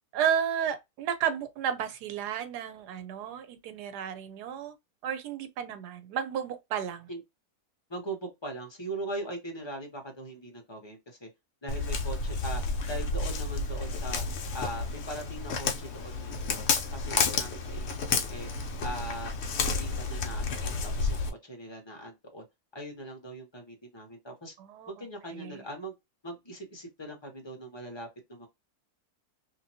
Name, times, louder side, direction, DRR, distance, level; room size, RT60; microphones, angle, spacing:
voice 1, 0.1-4.7 5.0-7.1 24.6-24.9 25.3-25.6, right 8 dB, 85° right, 1.2 m, -32 dB
voice 2, 7.9-11.3 11.6-12.6 12.9-14.2 14.5-16.7 16.9-18.5 18.8-22.4 22.7-24.5 24.9-25.9 26.2-28.5, right 1 dB, 25° left, 0.7 m, -40 dB
Walk footsteps, 11.7-21.3, left 4 dB, 60° left, 0.7 m, -31 dB
2.9 x 2.7 x 2.6 m
omnidirectional pair, 1.7 m